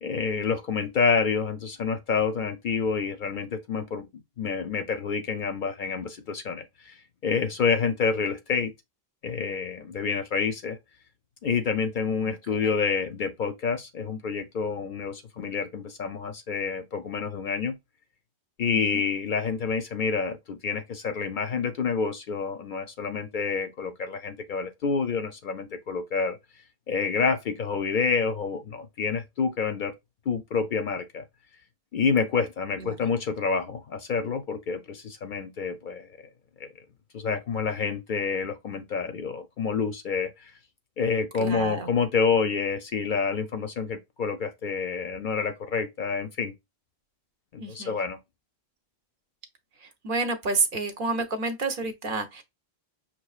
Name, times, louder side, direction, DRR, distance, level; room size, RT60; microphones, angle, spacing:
voice 1, 0.0-4.1 4.4-6.9 7.2-8.7 9.2-10.8 11.4-17.8 18.6-26.4 26.9-29.9 30.3-31.2 31.9-36.3 36.6-36.7 37.1-40.5 41.0-46.5 47.5-48.2, left 5 dB, 60° left, 0.6 m, -28 dB
voice 2, 12.2-12.7 18.7-19.0 32.8-33.0 41.4-41.9 47.6-48.0 49.8-52.4, right 3 dB, 60° right, 0.8 m, -30 dB
5.8 x 2.5 x 2.3 m
omnidirectional pair, 1.1 m